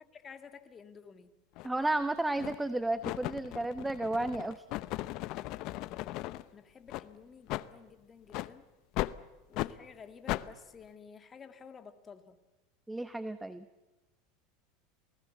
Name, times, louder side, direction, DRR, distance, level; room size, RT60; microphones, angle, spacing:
voice 1, 0.1-1.4 6.5-8.7 9.5-12.4, left 6 dB, 25° left, 9 dB, 1.9 m, -52 dB
sound 1, 1.6-1.7 2.4-2.7 3.0-6.4 6.9-7.1 7.5-7.7 8.3-8.5 9.0-9.2 9.5-9.7 10.3-10.5, left 17 dB, 55° left, 0.8 m, -36 dB
voice 2, 1.6-4.6 12.9-13.7, right 2 dB, 5° right, 12 dB, 0.8 m, -32 dB
27.5 x 19.0 x 8.3 m, 1.1 s
supercardioid pair, 125°, 0 cm